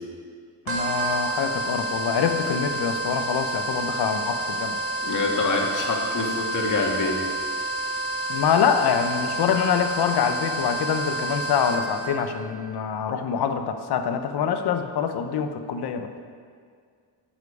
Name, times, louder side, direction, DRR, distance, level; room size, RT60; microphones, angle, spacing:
voice 1, 0.7-4.8 8.3-16.1, left 7 dB, 60° left, 7 dB, 0.9 m, -25 dB
sound 1, 0.7-12.1, right 2 dB, 30° right, 1.8 m, -29 dB
voice 2, 5.0-7.2, left 3 dB, 45° left, 0 dB, 1.8 m, -25 dB
12.0 x 7.4 x 4.9 m, 2.1 s
cardioid pair, 115°, 43 cm